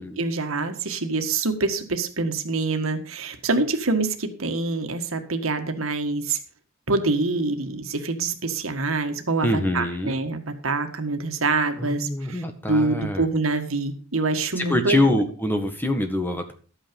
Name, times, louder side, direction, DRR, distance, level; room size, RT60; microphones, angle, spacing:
voice 1, 0.0-6.4 6.9-15.1, right 3 dB, 90° right, 7 dB, 1.7 m, -25 dB
voice 2, 9.4-10.2 11.8-13.3 14.6-16.5, left 1 dB, 10° left, 6 dB, 1.6 m, -25 dB
12.5 x 8.9 x 5.3 m, 0.38 s
head